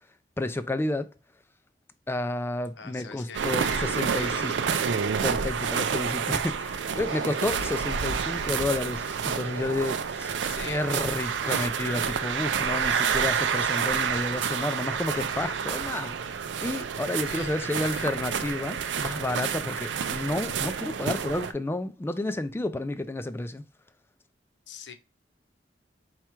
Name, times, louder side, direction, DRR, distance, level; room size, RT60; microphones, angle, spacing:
voice 1, 0.4-1.1 2.1-4.5 5.2-16.2 16.6-23.6, left 2 dB, 15° left, 0.3 m, -31 dB
voice 2, 2.8-4.9 7.1-7.8 10.4-11.0 17.2-18.1 24.7-24.9, left 5 dB, 75° left, 0.7 m, -43 dB
sound 1, 3.3-21.5, right 6 dB, 80° right, 0.4 m, -29 dB
4.4 x 2.4 x 4.4 m
head